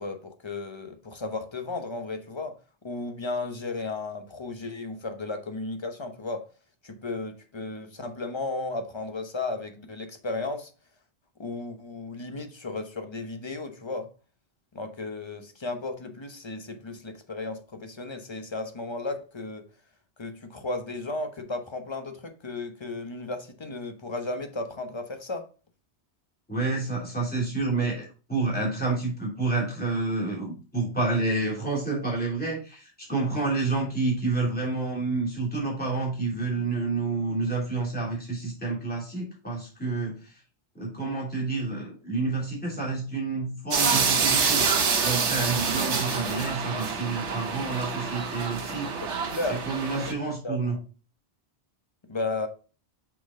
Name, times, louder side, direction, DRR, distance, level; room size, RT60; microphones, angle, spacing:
voice 1, 0.0-2.6 2.8-6.5 6.8-10.7 11.4-14.1 14.7-19.7 20.2-25.5 49.0-49.6 50.1-50.2 50.4-50.8 52.1-52.5, left 3 dB, 25° left, 0.9 m, -34 dB
voice 2, 26.5-40.3 40.7-44.7 45.0-48.9 49.5-50.8, right 3 dB, 10° left, 2.9 m, -29 dB
sound 1, 43.7-50.1, right 5 dB, 85° right, 1.3 m, -27 dB
6.0 x 5.5 x 3.6 m
omnidirectional pair, 1.2 m